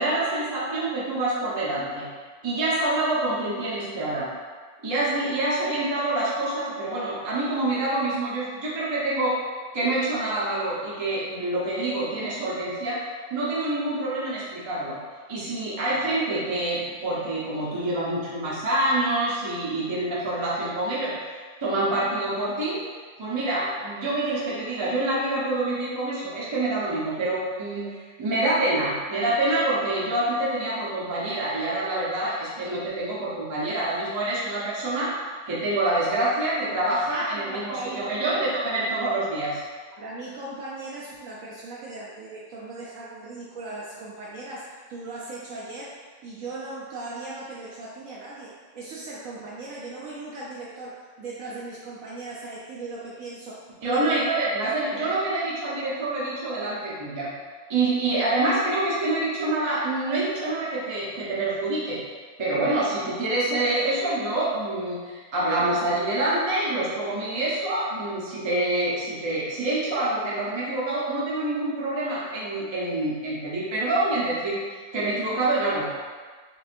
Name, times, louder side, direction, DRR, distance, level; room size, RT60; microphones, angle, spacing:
voice 1, 0.0-2.1 2.4-4.3 4.8-9.4 9.7-13.0 13.3-15.0 15.3-22.8 23.2-35.1 35.5-39.6 53.8-57.3 57.7-62.0 62.4-74.6 74.9-75.9, right 2 dB, 25° right, -7 dB, 0.6 m, -26 dB
voice 2, 37.4-38.5 40.0-54.2 54.6-55.1, right 2 dB, 70° right, -5 dB, 0.8 m, -38 dB
4.8 x 2.5 x 2.5 m, 1.5 s
omnidirectional pair, 1.7 m